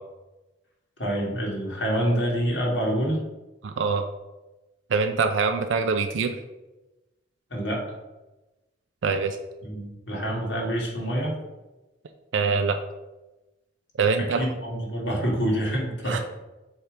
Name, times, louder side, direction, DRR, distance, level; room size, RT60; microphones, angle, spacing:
voice 1, 1.0-3.2 7.5-7.8 9.6-11.3 14.4-16.2, equal, 85° left, -4 dB, 2.2 m, -26 dB
voice 2, 3.6-4.0 4.9-6.4 9.0-9.4 12.3-12.8 14.0-14.5 16.1-16.2, right 4 dB, 90° right, 6 dB, 0.5 m, -24 dB
7.1 x 3.3 x 5.1 m, 1.1 s
head